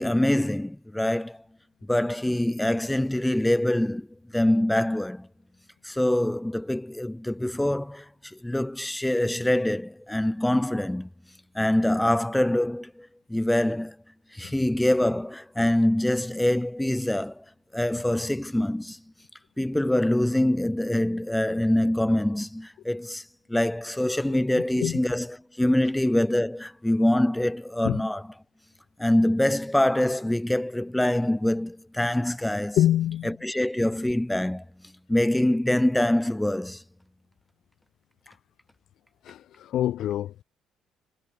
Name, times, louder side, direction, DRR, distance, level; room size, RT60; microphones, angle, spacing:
voice 1, 0.0-1.4 1.8-4.1 4.3-5.3 5.8-11.1 11.5-13.9 14.3-17.4 17.7-19.0 19.6-23.2 23.5-25.3 25.6-28.2 29.0-32.8 33.2-34.6 35.1-36.8, left 1 dB, 5° left, 4.8 m, -24 dB
voice 2, 32.8-33.3 38.3-38.4 39.2-40.4, left 12 dB, 65° left, 3.3 m, -26 dB
cardioid pair, 145°, 0 cm